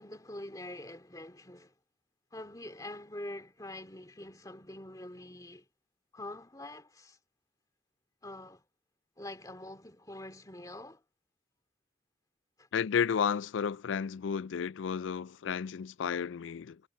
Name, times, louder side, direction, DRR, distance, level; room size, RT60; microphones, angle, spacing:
voice 1, 0.0-1.7 2.3-5.7 6.1-7.2 8.2-8.6 9.2-11.0 12.6-12.7, left 1 dB, 20° left, 2.4 m, -45 dB
voice 2, 12.7-16.8, left 7 dB, 90° left, 0.4 m, -32 dB
head